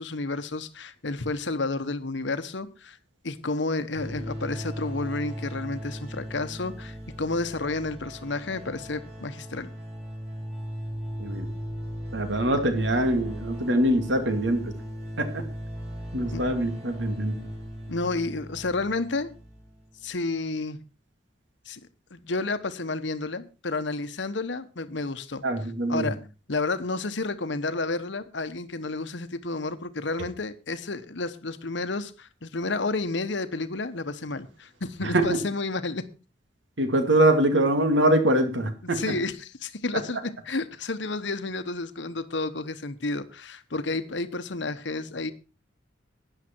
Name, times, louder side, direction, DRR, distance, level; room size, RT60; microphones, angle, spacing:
voice 1, 0.0-3.0 3.2-9.7 16.3-16.4 17.9-19.3 20.0-20.8 21.7-21.8 22.1-25.4 25.9-26.2 26.5-36.1 38.8-45.3, left 3 dB, 70° left, 11 dB, 1.1 m, -31 dB
sound 1, 3.9-19.8, equal, 35° right, 3.5 m, -38 dB
voice 2, 11.2-11.5 12.1-14.7 15.2-15.4 16.1-17.4 25.4-26.1 35.0-35.4 36.8-39.0, right 1 dB, 75° right, 7 dB, 2.3 m, -23 dB
12.5 x 9.9 x 4.5 m, 0.32 s
head